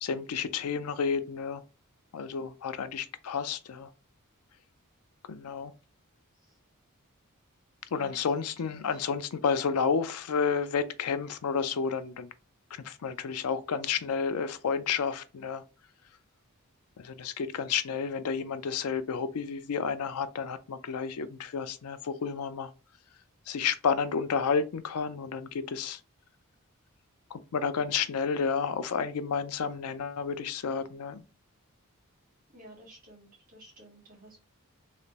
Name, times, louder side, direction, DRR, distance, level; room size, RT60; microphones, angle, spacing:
voice 1, 0.0-1.6 2.1-3.9 5.3-5.7 7.9-12.3 12.7-15.6 17.0-22.7 23.5-26.0 27.3-31.2, left 6 dB, 85° left, 0.4 m, -31 dB
voice 2, 7.9-9.0 32.5-34.4, right 1 dB, 40° right, 1.3 m, -53 dB
3.2 x 2.9 x 2.8 m
head